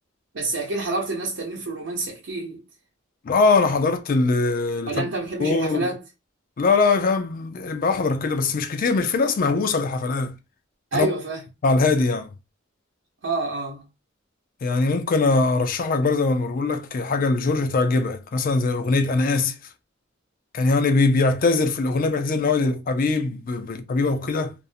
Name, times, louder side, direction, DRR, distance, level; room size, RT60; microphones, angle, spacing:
voice 1, 0.3-2.6 4.9-6.0 10.9-11.4 13.2-13.8, right 2 dB, 85° right, 0.7 m, -28 dB
voice 2, 3.2-5.0 5.4-5.9 6.6-10.3 10.9-11.1 11.6-12.3 14.6-19.5 20.5-24.5, left 3 dB, 45° left, 0.4 m, -22 dB
2.5 x 2.0 x 2.6 m
head